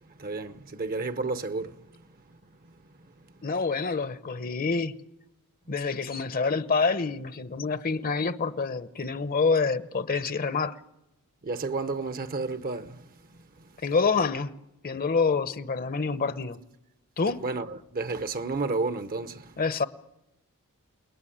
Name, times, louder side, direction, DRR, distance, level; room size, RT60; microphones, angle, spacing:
voice 1, 0.1-2.0 2.6-2.7 11.4-13.1 17.4-19.5, right 3 dB, 40° right, 0.9 m, -32 dB
voice 2, 3.4-4.9 5.7-10.8 13.8-14.5 14.8-16.6 17.2-17.4 19.6-19.9, left 4 dB, 40° left, 0.9 m, -27 dB
29.0 x 19.5 x 10.0 m
head